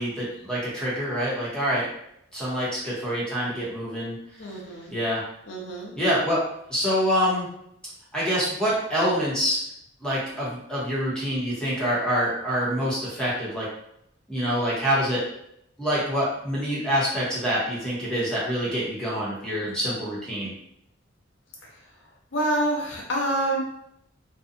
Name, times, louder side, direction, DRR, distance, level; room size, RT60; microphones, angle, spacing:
voice 1, 0.0-1.9 2.3-4.1 4.9-5.2 6.0-6.4 6.7-7.5 8.1-9.6 10.0-13.7 14.3-15.2 15.8-20.5, equal, 5° left, -8 dB, 0.9 m, -26 dB
voice 2, 4.4-4.9 5.5-5.9 21.6-21.9 22.3-23.6, right 1 dB, 80° left, -1 dB, 0.7 m, -27 dB
2.6 x 2.3 x 2.5 m, 0.76 s
head